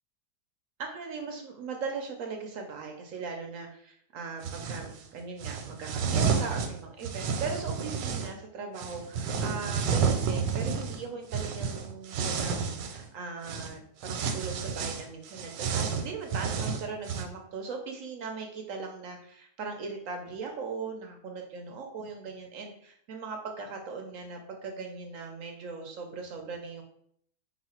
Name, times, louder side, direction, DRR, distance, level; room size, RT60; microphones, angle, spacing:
voice 1, 0.8-26.8, right 4 dB, 70° right, 3 dB, 0.8 m, -39 dB
sound 1, 4.4-4.9 5.4-8.3 8.8-13.1 13.4-13.7 14.0-17.2, right 6 dB, 85° right, 1.2 m, -30 dB
4.0 x 2.4 x 4.2 m, 0.68 s
omnidirectional pair, 1.8 m